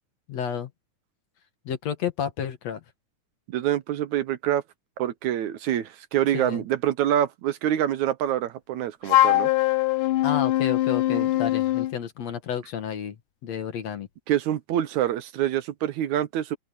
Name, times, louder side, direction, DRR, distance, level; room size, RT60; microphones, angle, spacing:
voice 1, 0.3-0.7 1.7-2.8 6.3-6.6 10.2-13.2 13.4-14.1, left 8 dB, 60° left, 2.6 m, -31 dB
voice 2, 3.5-4.6 5.0-9.5 11.1-11.3 14.3-16.6, right 11 dB, 70° right, 2.1 m, -26 dB
Wind instrument woodwind instrument, 9.1-12.0, left 15 dB, 80° left, 2.4 m, -22 dB
open air
omnidirectional pair, 3.7 m